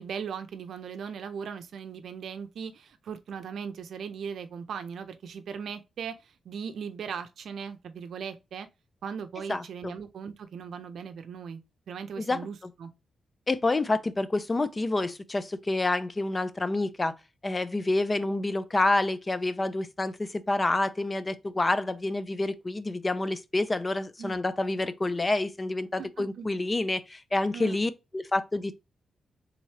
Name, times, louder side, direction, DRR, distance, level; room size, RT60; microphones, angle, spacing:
voice 1, 0.0-8.7 9.0-11.6 11.9-12.9 24.2-24.4 26.0-26.5 27.5-27.8, right 6 dB, 75° right, 0.5 m, -38 dB
voice 2, 9.5-9.9 12.2-12.4 13.5-17.1 17.4-28.8, left 2 dB, 25° left, 0.4 m, -28 dB
3.6 x 3.0 x 3.2 m
cardioid pair, 105°, 0 cm